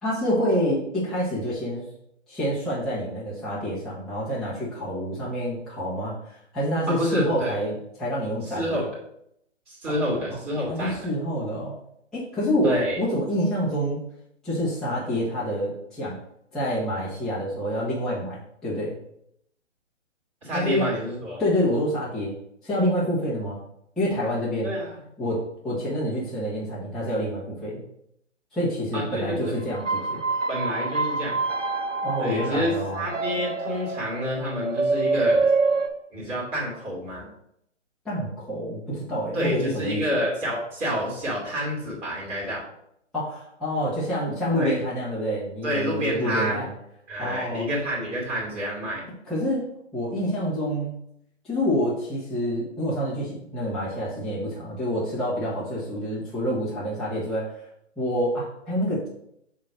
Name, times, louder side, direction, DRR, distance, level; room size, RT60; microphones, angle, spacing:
voice 1, 0.0-1.9 2.3-8.8 9.9-10.0 10.3-10.4 10.7-11.8 12.1-14.0 14.4-16.2 16.5-19.0 20.5-20.9 21.4-22.4 22.6-23.6 24.0-24.7 25.2-27.8 28.5-30.2 32.0-33.0 38.0-40.2 43.1-46.7 47.2-47.7 49.3-49.7 49.9-50.9 51.4-57.6 58.0-59.1, equal, ahead, -11 dB, 1.3 m, -27 dB
voice 2, 6.9-7.5 8.5-8.9 9.7-11.1 12.6-13.0 20.4-21.4 24.6-25.0 28.9-29.6 30.5-31.3 32.2-35.5 36.1-37.3 39.3-42.6 44.6-44.8 45.6-46.6 47.1-49.1, equal, 15° right, -5 dB, 2.8 m, -28 dB
sound 1, 29.7-35.9, right 3 dB, 80° right, 1.2 m, -26 dB
7.4 x 3.1 x 6.2 m, 0.73 s
figure-of-eight pair, 140°, 37 cm